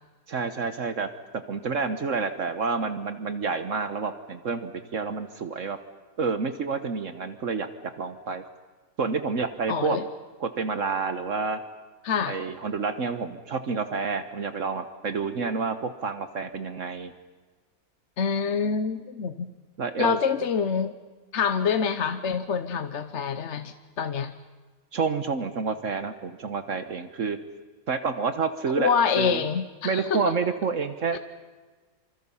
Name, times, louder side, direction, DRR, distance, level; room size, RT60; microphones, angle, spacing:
voice 1, 0.3-1.1 1.5-5.8 6.2-7.7 8.0-8.4 9.0-10.0 10.4-11.6 12.3-17.1 19.8-20.2 24.9-27.4 27.9-29.4 29.8-31.2, right 5 dB, 60° right, 9 dB, 1.4 m, -29 dB
voice 2, 9.7-10.0 12.0-12.4 18.2-19.5 20.0-21.0 21.3-24.3 28.8-30.3 31.1-31.2, left 6 dB, 55° left, 10 dB, 1.1 m, -26 dB
27.5 x 25.5 x 5.6 m, 1.3 s
omnidirectional pair, 1.5 m